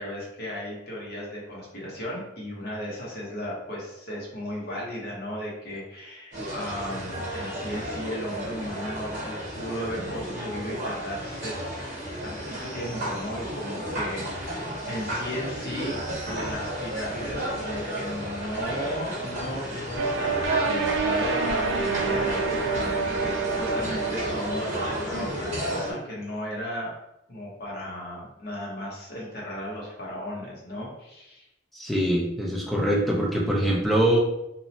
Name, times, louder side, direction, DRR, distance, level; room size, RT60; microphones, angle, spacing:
voice 1, 0.0-11.5 12.2-16.0 16.3-26.9 27.3-31.5, equal, 55° left, -4 dB, 0.8 m, -35 dB
sound 1, 6.3-25.9, right 1 dB, 40° right, 0.9 m, -32 dB
sound 2, 20.0-25.1, right 4 dB, 70° right, 0.3 m, -28 dB
voice 2, 31.7-34.2, right 1 dB, ahead, -3 dB, 0.4 m, -23 dB
2.8 x 2.0 x 2.7 m, 0.87 s
head